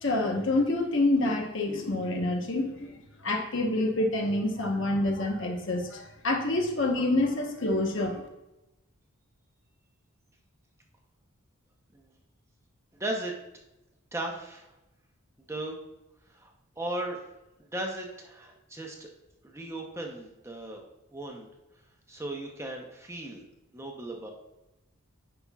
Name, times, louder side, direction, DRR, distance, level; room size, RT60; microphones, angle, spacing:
voice 1, 0.0-8.2, left 2 dB, 60° left, 2 dB, 1.1 m, -27 dB
voice 2, 12.9-13.3 14.1-14.7 15.5-15.8 16.3-17.2 17.7-19.1 19.4-20.8 21.1-21.5 22.1-23.4 23.7-24.3, right 1 dB, 15° right, 1 dB, 0.8 m, -36 dB
9.6 x 5.8 x 2.4 m, 0.95 s
head